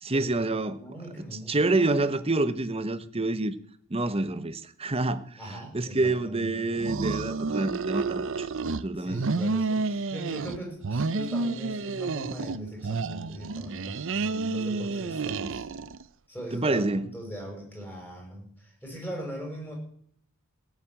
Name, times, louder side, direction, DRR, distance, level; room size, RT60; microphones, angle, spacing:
voice 1, 0.0-0.8 1.2-3.5 3.9-5.4 5.7-9.3 16.5-17.1, right 2 dB, 25° right, 0.9 m, -27 dB
voice 2, 0.7-1.6 5.4-6.8 9.0-15.7 16.3-19.7, equal, 10° left, 5.9 m, -40 dB
sound 1, 6.7-8.8 9.1-10.6 10.8-12.6 12.8-16.0, right 3 dB, 60° right, 0.6 m, -30 dB
16.5 x 7.4 x 8.9 m
head